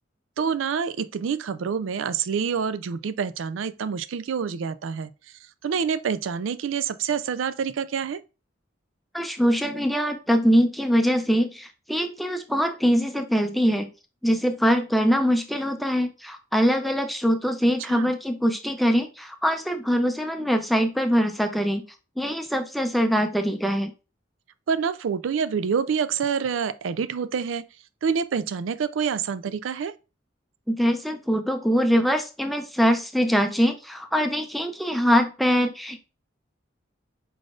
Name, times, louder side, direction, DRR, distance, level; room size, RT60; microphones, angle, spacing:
voice 1, 0.4-5.1 5.6-8.2 17.8-18.1 24.7-27.6 28.0-29.9, right 6 dB, 90° right, 0.4 m, -27 dB
voice 2, 9.1-13.9 14.2-21.8 22.2-23.9 30.7-36.0, equal, ahead, 0.5 m, -23 dB
5.0 x 3.9 x 2.4 m
head